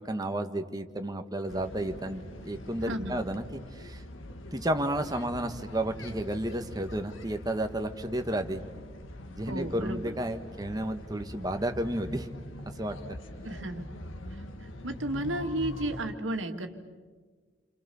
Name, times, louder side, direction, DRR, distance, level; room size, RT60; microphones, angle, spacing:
voice 1, 0.0-4.0 4.5-8.6 9.4-12.3 12.8-13.0, right 1 dB, 20° right, 6 dB, 1.5 m, -32 dB
sound 1, 1.5-16.1, left 1 dB, 85° left, 1.7 m, -43 dB
voice 2, 2.9-3.2 9.5-10.2 13.4-13.9 14.8-16.7, right 1 dB, 80° right, 5 dB, 2.2 m, -33 dB
29.0 x 27.0 x 7.0 m, 1.5 s
head